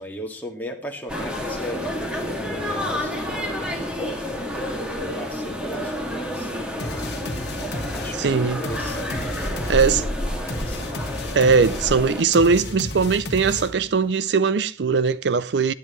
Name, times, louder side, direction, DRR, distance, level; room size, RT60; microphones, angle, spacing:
voice 1, 0.0-7.1 7.9-10.8, equal, 10° left, 1.9 m, -37 dB
sound 1, 1.1-12.2, left 1 dB, 5° right, 2.2 m, -29 dB
sound 2, 6.8-14.0, left 1 dB, 60° left, 1.4 m, -33 dB
voice 2, 8.1-8.6 9.7-10.0 11.3-15.7, right 5 dB, 70° right, 0.5 m, -20 dB
18.5 x 10.5 x 3.1 m
head